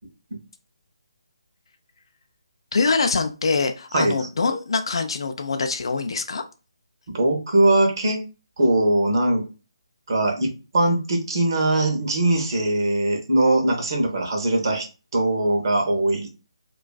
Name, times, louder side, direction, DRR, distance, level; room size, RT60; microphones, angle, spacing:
voice 1, 2.7-6.4, left 4 dB, 65° left, 7 dB, 0.3 m, -24 dB
voice 2, 7.1-8.2 8.6-9.4 10.1-14.9 15.1-16.3, right 1 dB, 50° right, 2 dB, 0.6 m, -21 dB
2.4 x 2.2 x 2.2 m, 0.32 s
figure-of-eight pair, 160°, 3 cm